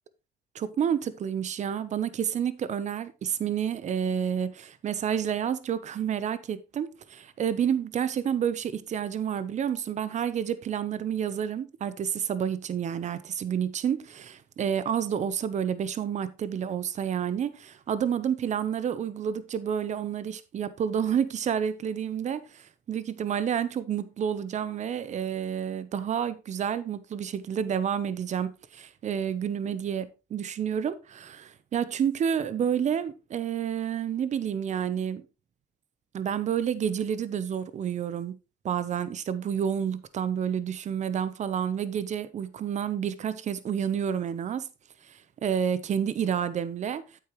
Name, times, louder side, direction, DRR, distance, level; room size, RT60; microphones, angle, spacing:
voice 1, 0.5-35.2 36.1-38.4 38.6-44.7 45.1-47.0, right 8 dB, 45° right, 0.9 m, -29 dB
8.7 x 8.3 x 3.1 m
cardioid pair, 110°, 17 cm